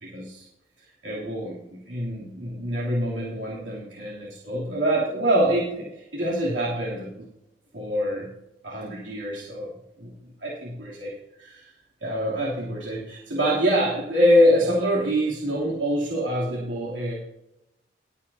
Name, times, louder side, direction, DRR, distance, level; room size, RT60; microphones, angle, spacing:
voice 1, 0.0-0.4 1.0-7.2 7.7-8.3 8.6-9.7 10.0-10.1 10.4-11.1 11.4-11.7 12.0-17.1, equal, 85° right, -6 dB, 3.0 m, -25 dB
20.0 x 8.5 x 2.8 m, 0.85 s
head